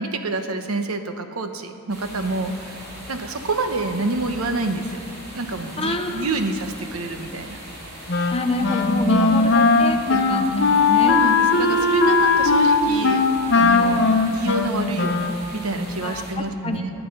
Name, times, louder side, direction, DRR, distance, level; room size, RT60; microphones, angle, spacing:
voice 1, 0.0-2.8 3.1-5.0 5.3-7.6 9.0-9.3 11.0-13.2 13.5-14.0 14.3-16.9, right 2 dB, 80° right, 7 dB, 1.0 m, -27 dB
sound 1, 1.9-16.3, equal, 45° right, 3.7 m, -39 dB
voice 2, 5.8-6.5 8.3-11.2 13.7-14.2 16.0-16.8, left 2 dB, 25° left, 5 dB, 0.9 m, -27 dB
Wind instrument woodwind instrument, 8.1-15.6, left 3 dB, 55° left, 0.9 m, -18 dB
19.0 x 9.4 x 5.5 m, 2.7 s
head